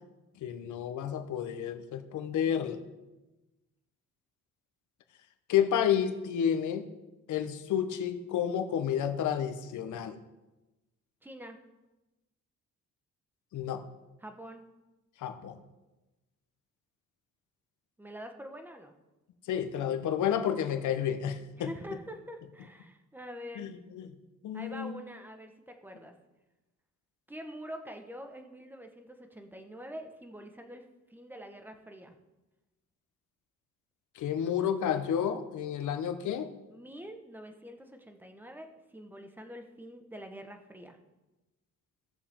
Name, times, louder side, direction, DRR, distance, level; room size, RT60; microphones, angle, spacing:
voice 1, 0.4-2.8 5.5-6.9 7.3-10.2 13.5-13.8 15.2-15.6 19.4-21.7 23.6-24.1 24.4-24.9 34.1-36.5, left 9 dB, 75° left, 8 dB, 1.1 m, -30 dB
voice 2, 11.2-11.6 14.2-14.7 18.0-18.9 21.6-23.7 24.5-26.1 27.3-30.8 31.1-32.2 36.7-41.0, equal, 5° right, 5 dB, 1.4 m, -45 dB
16.5 x 7.0 x 3.7 m, 1.1 s
cardioid pair, 90°, 30 cm